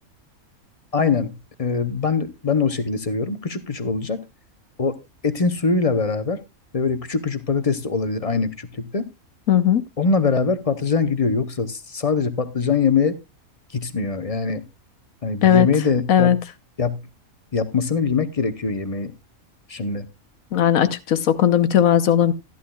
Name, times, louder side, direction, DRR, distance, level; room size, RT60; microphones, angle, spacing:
voice 1, 0.9-1.3 1.6-4.2 4.8-5.0 5.2-6.4 6.7-9.1 10.0-13.2 13.7-14.6 15.2-16.3 16.8-17.0 17.5-19.1 19.7-20.0, left 5 dB, 35° left, 0.7 m, -22 dB
voice 2, 9.5-9.8 15.4-15.7 16.1-16.4 20.5-22.3, left 10 dB, 75° left, 1.3 m, -17 dB
13.0 x 11.5 x 2.3 m
omnidirectional pair, 1.5 m